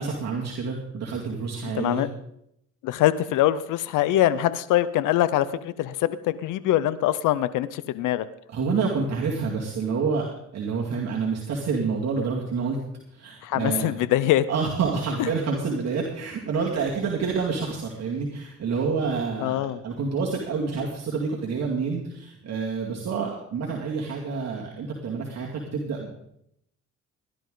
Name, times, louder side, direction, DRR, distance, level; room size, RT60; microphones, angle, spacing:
voice 1, 0.0-2.0 8.5-10.3 10.5-12.8 13.1-14.0 14.5-26.1, right 5 dB, 60° right, -2 dB, 2.3 m, -28 dB
voice 2, 1.7-2.1 2.8-8.3 13.4-14.5 15.2-15.3 19.4-19.8, left 13 dB, 90° left, 16 dB, 0.6 m, -23 dB
17.5 x 11.5 x 3.9 m, 0.75 s
cardioid pair, 90°, 30 cm